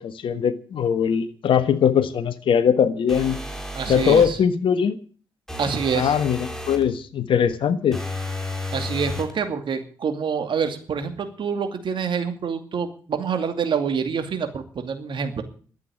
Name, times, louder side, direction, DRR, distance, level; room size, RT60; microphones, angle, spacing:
voice 1, 0.0-3.4 3.9-5.0 5.9-8.0, left 7 dB, 65° left, 1.3 m, -21 dB
sound 1, 3.1-4.4 5.5-6.9 7.9-9.4, left 1 dB, 5° left, 4.1 m, -32 dB
voice 2, 3.7-4.4 5.6-6.1 8.7-15.4, right 6 dB, 60° right, 2.5 m, -26 dB
12.5 x 8.4 x 10.0 m
hypercardioid pair, 40°, 9 cm